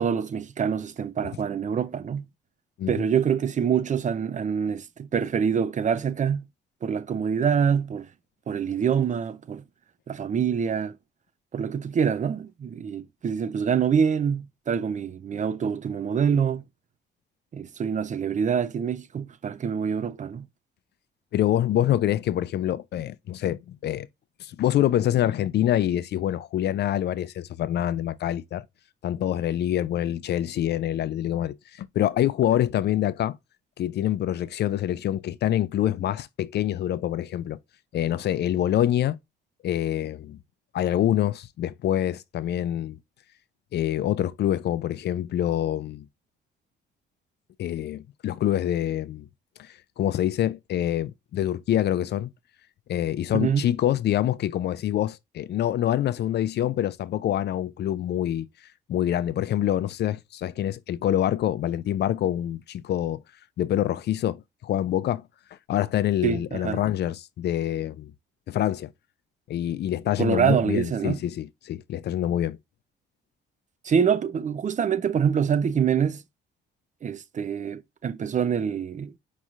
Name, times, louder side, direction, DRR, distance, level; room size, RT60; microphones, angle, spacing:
voice 1, 0.0-2.2 2.9-6.5 6.8-8.1 8.5-9.6 10.1-10.9 11.5-16.6 17.5-20.4 53.3-53.6 66.2-66.8 70.2-71.2 73.8-76.2 77.0-79.1, right 7 dB, 40° right, 0.5 m, -25 dB
voice 2, 21.3-24.1 24.4-28.6 29.0-33.4 33.8-37.6 37.9-39.2 39.6-40.4 40.7-43.0 43.7-46.1 47.6-49.3 49.6-49.7 50.0-52.3 52.9-58.5 58.9-63.2 63.6-65.2 65.7-68.1 68.5-68.9 69.5-72.6, left 12 dB, 55° left, 0.4 m, -26 dB
5.3 x 3.1 x 2.4 m
cardioid pair, 90°, 20 cm